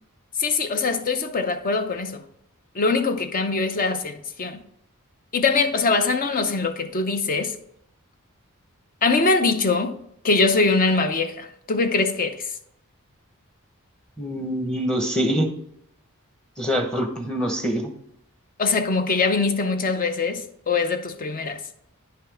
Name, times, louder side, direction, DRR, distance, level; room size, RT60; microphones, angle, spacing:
voice 1, 0.4-2.2 2.8-4.6 5.3-7.5 9.0-10.0 10.2-12.5 18.6-21.6, left 3 dB, 40° left, 0.6 m, -22 dB
voice 2, 14.2-15.5 16.6-17.9, equal, 5° left, 0.9 m, -24 dB
9.8 x 5.7 x 3.3 m
head